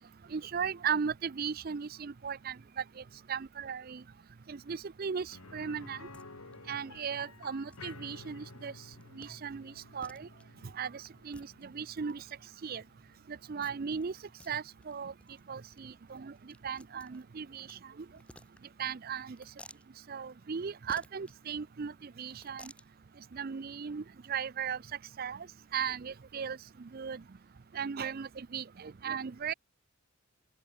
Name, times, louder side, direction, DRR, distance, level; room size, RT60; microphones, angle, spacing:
voice 1, 0.3-3.0 3.3-4.0 4.5-6.1 6.7-8.7 9.2-10.3 10.7-12.2 12.6-12.8 13.3-14.2 14.5-15.1 15.5-18.1 18.8-19.4 20.1-22.7 23.3-24.8 25.2-25.5 25.7-27.2 27.7-29.5, right 6 dB, 40° right, 0.4 m, -37 dB
sound 1, 5.3-15.1 15.4-15.5 17.9-18.0, left 3 dB, 75° left, 2.1 m, -53 dB
sound 2, 6.1-6.3 6.5-6.6 6.9-7.0 7.7-8.0 8.5-8.6 8.9-9.3 9.7-9.8 10.0-10.4 11.1-12.3 13.6-14.0 14.3-14.5 14.8-14.9 15.2-15.4 15.7-15.8 16.1-17.8 18.1-18.9 19.3-19.9 20.9-21.4 22.2-22.9, left 1 dB, 5° left, 3.4 m, -54 dB
open air
head